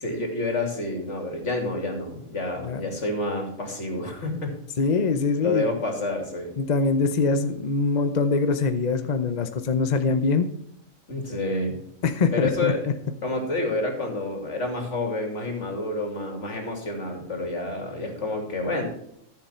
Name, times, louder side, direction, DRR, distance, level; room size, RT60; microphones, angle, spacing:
voice 1, 0.0-4.6 5.4-6.5 11.1-11.8 12.3-12.8 13.2-18.9, left 2 dB, 60° left, 3 dB, 2.9 m, -29 dB
voice 2, 4.8-5.6 6.6-10.5 12.0-12.7, left 4 dB, 40° left, 9 dB, 0.7 m, -23 dB
13.5 x 7.2 x 4.4 m, 0.73 s
omnidirectional pair, 1.4 m